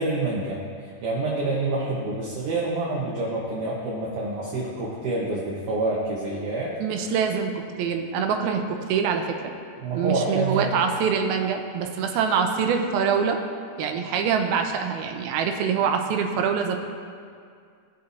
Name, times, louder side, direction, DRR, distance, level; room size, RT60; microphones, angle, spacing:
voice 1, 0.0-6.7 9.8-10.7, right 2 dB, 65° right, -5 dB, 2.3 m, -27 dB
voice 2, 6.8-9.5 9.9-13.4 13.8-16.8, right 6 dB, 85° right, 4 dB, 2.5 m, -25 dB
19.0 x 6.6 x 2.7 m, 2.2 s
omnidirectional pair, 4.5 m